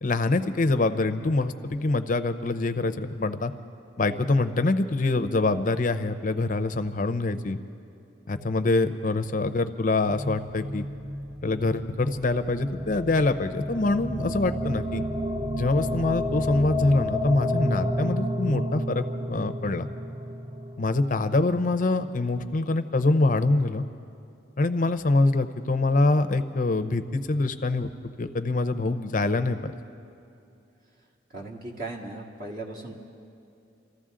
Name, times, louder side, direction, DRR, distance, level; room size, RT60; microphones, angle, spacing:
voice 1, 0.0-3.5 4.0-7.6 8.3-10.8 11.4-15.0 15.5-19.9 20.8-23.8 24.6-27.9 28.2-29.7, left 2 dB, 40° left, 9 dB, 0.6 m, -25 dB
sound 1, 10.1-22.3, left 1 dB, 15° right, 0.5 m, -31 dB
voice 2, 31.3-32.9, right 2 dB, 45° right, -2 dB, 1.9 m, -37 dB
26.5 x 14.5 x 3.7 m, 2.7 s
head